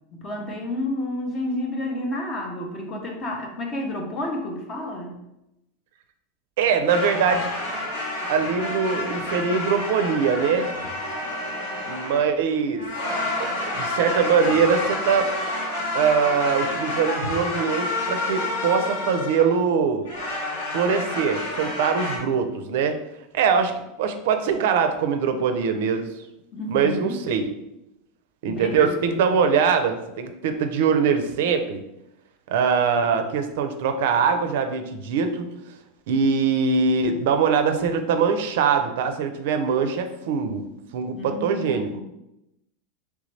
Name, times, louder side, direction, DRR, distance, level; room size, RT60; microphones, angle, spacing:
voice 1, 0.1-5.1 26.5-27.1 28.5-29.2 41.2-42.0, left 1 dB, 20° left, 1 dB, 0.6 m, -30 dB
voice 2, 6.6-7.5 8.3-10.7 11.8-12.9 13.4-15.3 15.9-20.1 20.7-23.0 23.3-23.7 24.0-26.1 26.7-27.5 28.4-31.8 32.5-35.5 36.1-40.6 40.9-41.9, right 6 dB, 60° right, 7 dB, 0.4 m, -22 dB
sound 1, 6.9-12.4 12.8-19.6 20.0-22.2, left 2 dB, 80° left, 1.4 m, -29 dB
4.0 x 3.3 x 3.2 m, 0.88 s
supercardioid pair, 175°, 0 cm